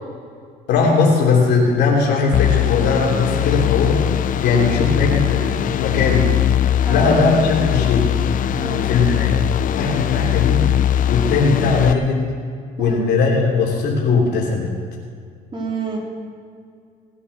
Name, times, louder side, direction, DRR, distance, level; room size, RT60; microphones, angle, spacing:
voice 1, 0.7-4.0 4.4-6.3 6.9-8.1 8.8-9.4 9.7-10.6 11.1-12.3 12.8-14.7, left 4 dB, 75° left, -2 dB, 3.1 m, -18 dB
sound 1, 2.3-11.9, left 11 dB, 50° left, 0.6 m, -20 dB
voice 2, 8.6-8.9 12.8-13.0 15.5-16.0, right 3 dB, 30° right, -2 dB, 3.8 m, -28 dB
18.5 x 8.5 x 6.7 m, 2.3 s
cardioid pair, 110°, 17 cm